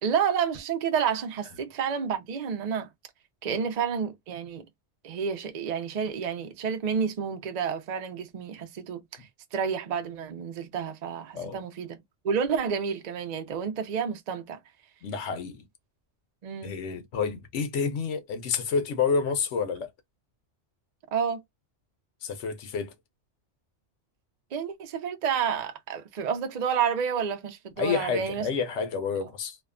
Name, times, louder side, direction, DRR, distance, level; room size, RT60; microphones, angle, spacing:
voice 1, 0.0-2.9 3.4-4.6 5.0-12.0 12.2-14.6 16.4-16.8 21.1-21.4 24.5-28.5, right 7 dB, 50° right, 0.5 m, -30 dB
voice 2, 15.0-15.6 16.6-19.9 22.2-22.9 27.8-29.6, left 5 dB, 85° left, 1.0 m, -29 dB
2.7 x 2.2 x 2.3 m
omnidirectional pair, 1.2 m